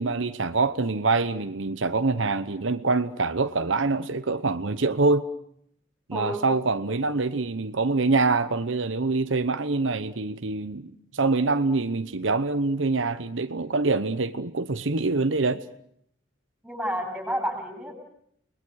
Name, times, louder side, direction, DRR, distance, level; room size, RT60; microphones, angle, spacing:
voice 1, 0.0-5.3 6.1-15.6, right 3 dB, 75° right, 1.0 m, -25 dB
voice 2, 6.1-6.4 16.6-18.0, equal, 5° right, 7.8 m, -30 dB
30.0 x 21.0 x 6.5 m
head